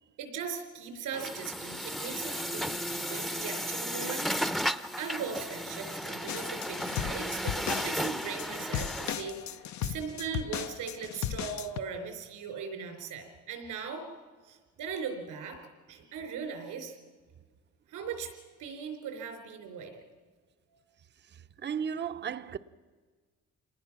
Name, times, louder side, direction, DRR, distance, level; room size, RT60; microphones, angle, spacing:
voice 1, 0.2-4.3 4.6-4.7 5.0-14.1 14.4-15.6 15.9-17.0 17.9-20.0 20.7-20.8, right 6 dB, 90° right, 3.9 m, -39 dB
Truck, 1.1-9.1, equal, ahead, 0.7 m, -34 dB
sound 1, 6.3-11.8, left 10 dB, 70° left, 0.7 m, -36 dB
voice 2, 21.3-22.6, right 7 dB, 35° right, 0.6 m, -35 dB
26.5 x 19.5 x 6.0 m
cardioid pair, 90°, 30 cm